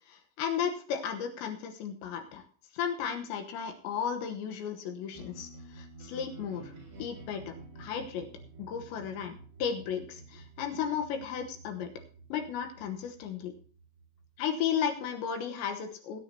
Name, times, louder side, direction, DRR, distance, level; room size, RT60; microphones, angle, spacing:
voice 1, 0.1-2.4 2.7-6.7 7.0-8.3 8.6-11.9 12.3-13.5 14.4-16.2, left 7 dB, 75° left, 5 dB, 3.1 m, -34 dB
sound 1, 5.1-15.2, right 2 dB, 55° right, 7.5 m, -50 dB
19.5 x 9.4 x 2.8 m, 0.41 s
omnidirectional pair, 5.9 m